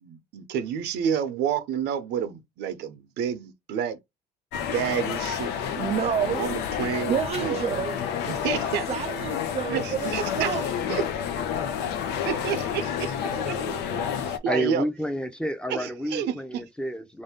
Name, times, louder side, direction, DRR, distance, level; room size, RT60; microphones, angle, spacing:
voice 1, 0.0-4.0 4.6-5.5 6.4-7.6 8.3-8.9 9.7-10.5 10.9-11.0 12.2-13.1 13.4-13.5 14.2-14.8 15.7-16.3, right 8 dB, 80° right, 0.7 m, -29 dB
sound 1, 4.5-14.4, left 8 dB, 90° left, 0.6 m, -30 dB
voice 2, 5.7-6.5 6.8-8.0 8.9-10.7 13.3-14.1, right 8 dB, 40° right, 0.4 m, -30 dB
voice 3, 14.5-17.2, equal, 5° left, 0.6 m, -30 dB
3.7 x 2.7 x 3.6 m
cardioid pair, 110°, 17 cm